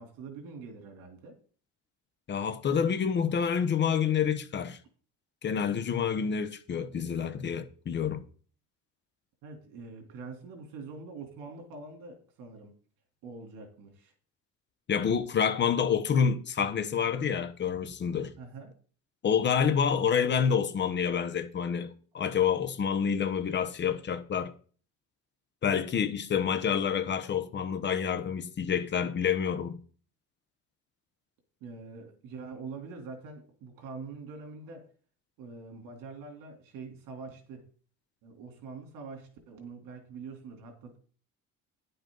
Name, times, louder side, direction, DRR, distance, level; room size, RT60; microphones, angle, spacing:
voice 1, 0.0-1.4 9.4-12.7 13.2-14.1 18.4-18.7 31.6-34.8 35.4-37.6 38.2-41.0, right 4 dB, 85° right, 3.2 m, -44 dB
voice 2, 2.3-4.8 5.4-8.2 14.9-18.3 19.2-24.5 25.6-29.8, left 7 dB, 35° left, 0.8 m, -28 dB
10.5 x 7.8 x 3.8 m
cardioid pair, 150°, 32 cm